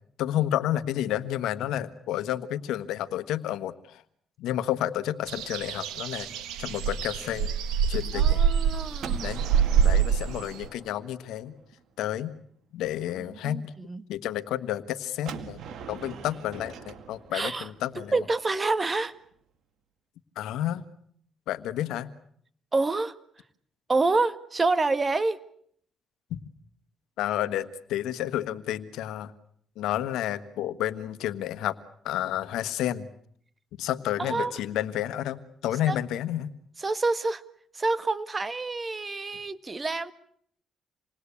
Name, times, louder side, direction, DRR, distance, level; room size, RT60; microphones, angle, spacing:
voice 1, 0.2-4.0 4.4-6.3 6.6-7.5 7.9-8.4 9.2-9.5 9.8-11.6 12.0-12.3 12.7-13.7 14.1-15.6 15.9-18.1 20.3-20.9 21.5-22.1 26.3-26.4 27.2-29.3 29.8-31.8 32.0-33.1 33.8-36.5, left 12 dB, 90° left, 12 dB, 1.4 m, -30 dB
sound 1, 5.3-10.7, right 8 dB, 90° right, 2.0 m, -25 dB
voice 2, 8.1-9.3 13.4-14.0 17.3-17.7 18.1-19.1 22.7-23.1 23.9-25.4 34.2-34.5 35.9-36.0 36.8-37.4 37.7-40.1, right 3 dB, 25° right, 12 dB, 1.6 m, -27 dB
Gunshot gunfire, 9.0-11.8 15.3-19.1, right 7 dB, 70° right, 2.1 m, -43 dB
28.0 x 20.5 x 8.5 m, 0.66 s
cardioid pair, 90°, 0 cm